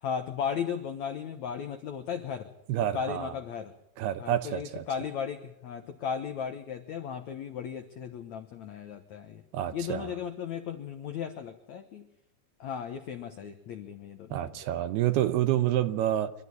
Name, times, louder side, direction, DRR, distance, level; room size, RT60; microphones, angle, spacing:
voice 1, 0.0-2.5 2.9-3.7 4.2-9.4 9.7-12.1 12.6-14.4, left 7 dB, 85° left, 7 dB, 1.6 m, -36 dB
voice 2, 2.7-3.3 4.0-4.9 9.5-10.1 14.3-16.3, right 12 dB, 75° right, 11 dB, 2.7 m, -28 dB
25.5 x 13.0 x 9.6 m, 0.81 s
omnidirectional pair, 5.1 m